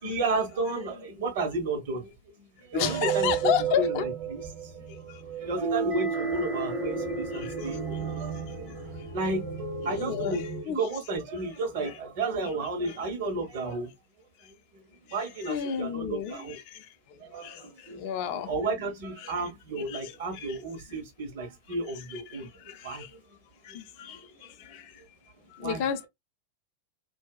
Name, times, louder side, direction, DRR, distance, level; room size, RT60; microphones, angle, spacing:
voice 1, 0.0-3.5 3.8-5.0 5.4-13.9 14.4-14.8 15.1-16.6 17.2-23.2 23.7-24.5 25.6-25.8, right 3 dB, 55° right, 1.1 m, -33 dB
voice 2, 2.7-4.0 7.4-7.5 9.9-10.4 10.7-10.9 12.9-13.0 15.4-16.6 17.4-17.6 18.0-18.5 19.2-19.3 19.9-20.0 20.3-20.6 22.7-23.0 23.7-24.2 24.7-24.8 25.6-26.1, left 9 dB, 45° left, 0.4 m, -30 dB
sound 1, 2.8-10.6, right 5 dB, 40° right, 0.9 m, -32 dB
2.7 x 2.2 x 2.3 m
figure-of-eight pair, 90°, 0 cm